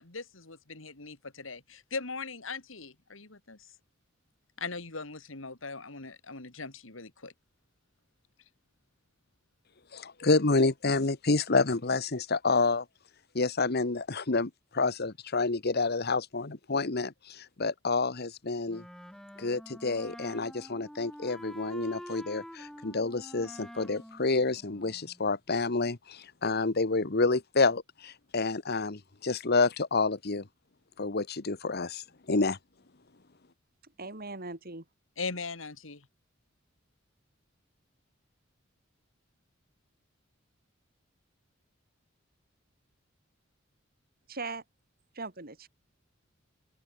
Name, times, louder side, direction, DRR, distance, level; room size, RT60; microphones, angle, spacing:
voice 1, 0.0-3.7 4.6-7.3 35.2-36.1, left 4 dB, 75° left, 2.7 m, -40 dB
voice 2, 9.9-12.8 13.3-18.8 19.4-30.5 31.0-32.6, left 3 dB, 55° left, 1.3 m, -29 dB
Wind instrument woodwind instrument, 18.7-25.3, equal, ahead, 1.0 m, -47 dB
voice 3, 34.0-34.8 44.3-44.6 45.1-45.7, right 3 dB, 50° right, 3.7 m, -39 dB
open air
head